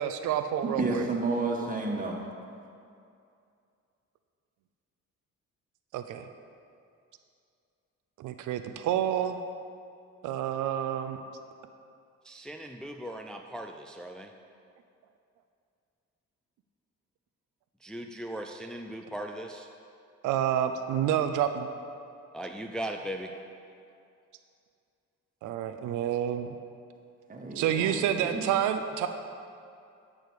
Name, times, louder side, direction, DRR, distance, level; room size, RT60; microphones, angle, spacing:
voice 1, 0.0-1.0 5.9-6.2 8.2-9.4 10.2-11.2 20.2-21.7 25.4-26.5 27.6-29.1, right 10 dB, 85° right, 8 dB, 0.6 m, -28 dB
voice 2, 0.7-2.1 27.3-28.4, right 3 dB, 25° right, 0 dB, 1.8 m, -31 dB
voice 3, 12.2-14.3 17.8-19.7 22.3-23.3, right 1 dB, ahead, 3 dB, 0.5 m, -38 dB
12.0 x 5.0 x 6.6 m, 2.5 s
cardioid pair, 90°, 30 cm